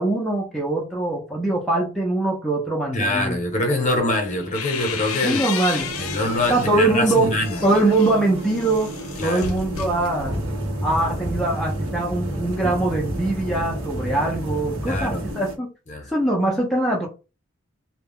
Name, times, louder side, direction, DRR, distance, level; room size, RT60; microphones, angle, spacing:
voice 1, 0.0-3.4 5.2-5.9 6.5-7.3 7.6-8.9 9.2-10.4 10.8-15.7 16.1-17.1, right 2 dB, ahead, 0.4 m, -22 dB
voice 2, 2.9-5.4 6.0-7.6 9.2-9.5 14.9-15.3 15.9-16.1, left 2 dB, 35° left, 0.7 m, -24 dB
sound 1, 4.1-6.8 7.3-10.6, left 6 dB, 85° left, 0.5 m, -32 dB
sound 2, 5.7-15.6, right 1 dB, 80° right, 0.7 m, -35 dB
sound 3, 10.2-15.3, equal, 25° right, 0.7 m, -30 dB
2.2 x 2.0 x 3.5 m
head